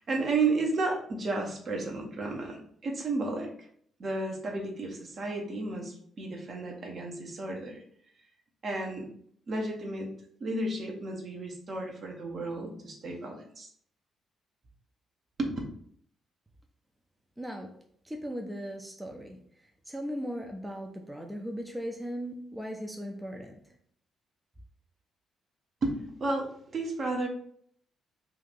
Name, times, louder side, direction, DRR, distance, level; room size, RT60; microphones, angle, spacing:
voice 1, 0.0-3.5 4.0-7.8 8.6-9.1 9.5-10.1 10.4-13.7 15.4-15.6 25.8-27.3, right 3 dB, 50° right, 0 dB, 0.8 m, -32 dB
voice 2, 17.4-17.7 18.0-23.7, equal, 10° right, 2 dB, 0.5 m, -38 dB
2.8 x 2.5 x 3.9 m, 0.63 s
hypercardioid pair, 40°, 0 cm